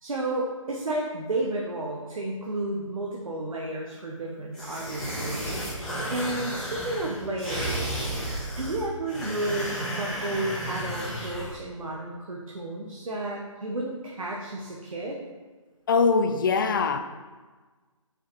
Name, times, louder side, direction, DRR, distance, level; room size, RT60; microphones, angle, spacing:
voice 1, 0.0-8.0 8.6-15.2, right 2 dB, 80° right, -2 dB, 1.2 m, -32 dB
sound 1, 4.5-11.5, right 1 dB, 5° left, 1.4 m, -33 dB
voice 2, 15.9-17.0, left 4 dB, 40° left, 8 dB, 0.5 m, -22 dB
5.4 x 5.0 x 4.5 m, 1.3 s
figure-of-eight pair, 150°, 17 cm